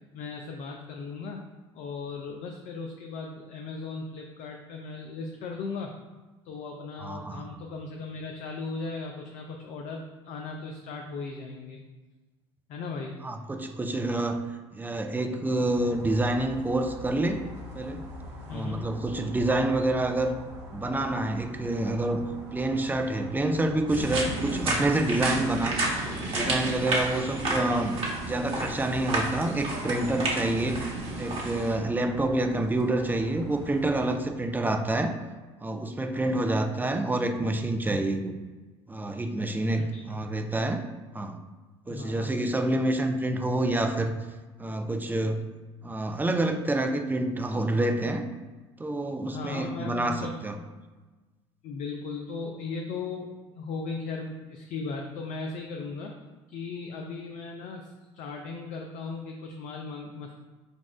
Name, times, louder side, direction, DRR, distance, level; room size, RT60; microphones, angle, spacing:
voice 1, 0.1-1.4 1.7-5.9 6.4-11.8 12.7-13.1 18.5-18.9 39.7-40.2 41.9-42.3 49.3-50.5 51.6-56.2 56.5-60.3, left 4 dB, 55° left, 2 dB, 0.5 m, -37 dB
voice 2, 7.0-7.5 13.2-14.4 14.7-17.4 17.7-18.1 18.5-20.4 20.7-22.2 22.5-25.8 26.3-30.8 31.2-35.1 35.6-38.3 38.9-40.8 41.1-41.4 41.9-44.2 44.6-45.4 45.8-48.2 48.8-50.6, right 2 dB, 10° right, 6 dB, 0.5 m, -27 dB
sound 1, 15.6-34.2, equal, 85° right, 0.7 m, -44 dB
sound 2, 23.9-31.7, right 2 dB, 40° right, 1.4 m, -31 dB
4.1 x 2.4 x 4.4 m, 1.2 s
hypercardioid pair, 65°, 15 cm